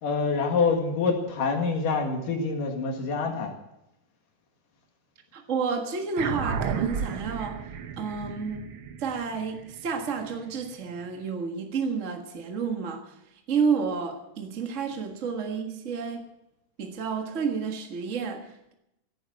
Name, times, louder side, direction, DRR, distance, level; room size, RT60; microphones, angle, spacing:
voice 1, 0.0-3.5, left 4 dB, 65° left, 3.4 m, -26 dB
voice 2, 5.3-7.6 8.0-8.7 9.0-13.1 13.5-16.3 16.8-18.7, right 5 dB, 55° right, 0.8 m, -30 dB
sound 1, 6.2-10.9, right 6 dB, 75° right, 1.1 m, -33 dB
16.5 x 9.4 x 7.7 m
omnidirectional pair, 4.1 m